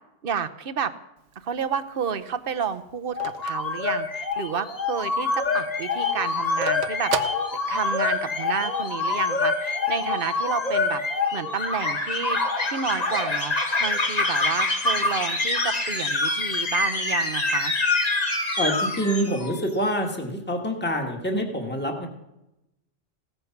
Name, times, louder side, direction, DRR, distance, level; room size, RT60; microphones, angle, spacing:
voice 1, 0.2-0.9 1.4-7.1 7.7-11.0 11.3-13.5 13.8-17.7, right 7 dB, 55° right, 10 dB, 1.1 m, -30 dB
Telephone, 1.2-4.6 5.0-5.1 5.3-8.2, right 8 dB, 85° right, 1.2 m, -34 dB
sound 1, 3.1-19.7, left 3 dB, 35° left, 1.5 m, -26 dB
voice 2, 18.6-22.1, equal, 10° left, 3 dB, 1.7 m, -26 dB
16.5 x 13.5 x 6.0 m, 0.90 s
omnidirectional pair, 1.2 m